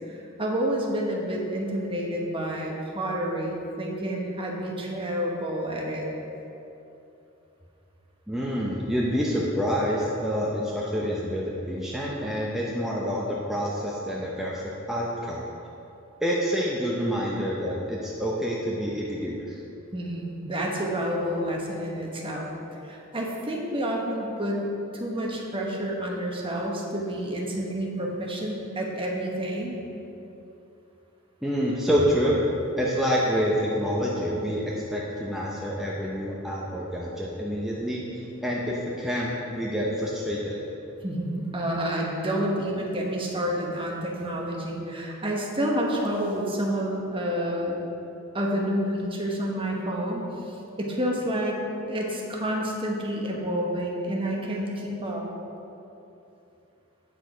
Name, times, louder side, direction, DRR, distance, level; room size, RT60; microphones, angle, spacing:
voice 1, 0.1-6.1 19.9-22.5 22.8-24.6 24.9-29.8 41.0-47.8 48.3-51.6 51.9-55.2, equal, 25° right, -1 dB, 1.2 m, -29 dB
voice 2, 8.3-15.4 16.2-19.6 31.4-32.4 32.8-40.6, equal, ahead, -5 dB, 0.7 m, -27 dB
8.3 x 6.6 x 5.0 m, 2.9 s
head